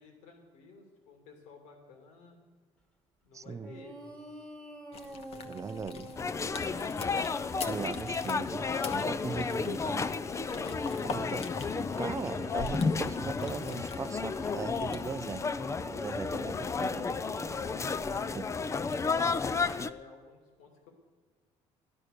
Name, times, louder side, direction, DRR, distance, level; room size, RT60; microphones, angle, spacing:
voice 1, 0.0-2.4 3.2-4.2 19.6-20.9, left 5 dB, 85° left, 3 dB, 2.7 m, -53 dB
voice 2, 3.3-3.7 5.4-6.1 7.7-10.1 11.0-15.4 15.9-17.1 18.3-18.4, right 5 dB, 25° right, 16 dB, 0.5 m, -39 dB
sound 1, 3.6-18.4, right 2 dB, 5° left, 1.5 m, -47 dB
sound 2, 4.9-15.1, left 4 dB, 55° left, 1.1 m, -44 dB
sound 3, 6.2-19.9, left 5 dB, 25° left, 0.5 m, -32 dB
12.5 x 11.5 x 6.5 m, 1.5 s
cardioid pair, 110°, 12 cm